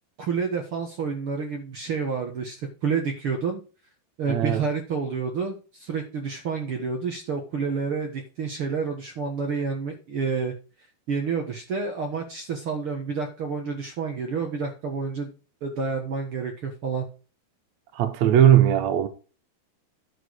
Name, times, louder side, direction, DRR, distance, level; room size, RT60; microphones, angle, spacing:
voice 1, 0.2-2.6 2.8-3.6 4.2-10.5 11.1-15.3 15.6-17.1, right 5 dB, 65° right, 1.4 m, -29 dB
voice 2, 4.3-4.6 17.9-19.1, right 10 dB, 80° right, 1.6 m, -18 dB
10.5 x 6.2 x 4.7 m
omnidirectional pair, 4.5 m